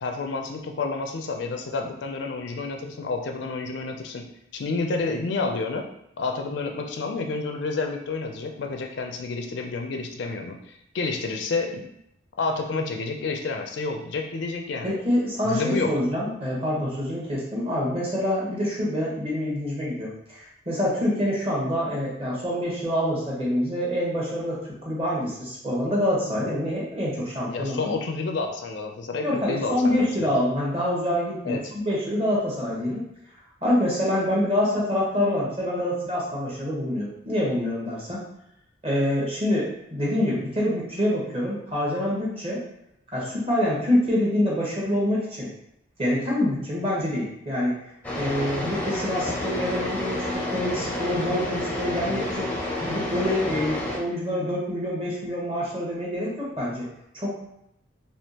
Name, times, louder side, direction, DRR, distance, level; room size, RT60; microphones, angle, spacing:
voice 1, 0.0-4.3 4.5-5.8 6.2-11.9 12.4-14.9 15.4-15.9 27.5-30.3 31.4-31.7, left 3 dB, 65° left, 3 dB, 0.4 m, -29 dB
voice 2, 14.8-27.9 29.2-33.0 33.6-38.2 38.8-42.6 43.1-45.5 46.0-47.7 48.1-52.5 52.9-56.9 57.1-57.4, left 1 dB, 30° right, -5 dB, 1.0 m, -26 dB
sound 1, 48.0-54.0, left 1 dB, 10° left, 0.5 m, -29 dB
3.4 x 2.8 x 2.8 m, 0.77 s
head